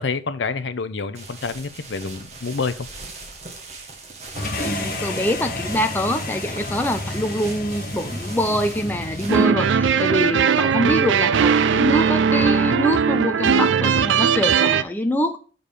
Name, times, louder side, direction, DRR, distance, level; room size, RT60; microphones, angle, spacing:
voice 1, 0.0-2.9, left 4 dB, 80° left, 0.6 m, -28 dB
sound 1, 1.1-9.4, right 3 dB, 35° right, 1.5 m, -39 dB
sound 2, 4.3-9.5, left 2 dB, 50° left, 1.0 m, -30 dB
voice 2, 4.6-15.4, equal, 10° left, 0.5 m, -24 dB
sound 3, 9.3-14.8, right 6 dB, 85° right, 0.4 m, -19 dB
6.8 x 3.9 x 6.5 m
head